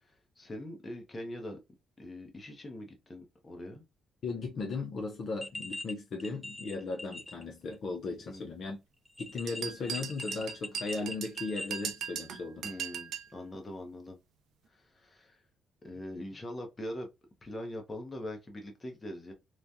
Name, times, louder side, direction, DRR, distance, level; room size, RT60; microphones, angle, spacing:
voice 1, 0.0-1.6 2.0-3.8 8.3-8.5 12.6-14.2 14.7-15.4 15.8-17.1 17.4-19.3, left 1 dB, 25° left, 0.9 m, -42 dB
voice 2, 4.2-8.8 9.2-12.7, left 3 dB, 55° left, 0.5 m, -37 dB
sound 1, 5.4-5.9 6.2-7.4 7.7-7.8 9.1-11.9, left 1 dB, 5° left, 0.3 m, -41 dB
sound 2, 9.5-13.3, right 8 dB, 75° right, 0.5 m, -39 dB
3.1 x 2.2 x 2.5 m
cardioid pair, 90°, 0 cm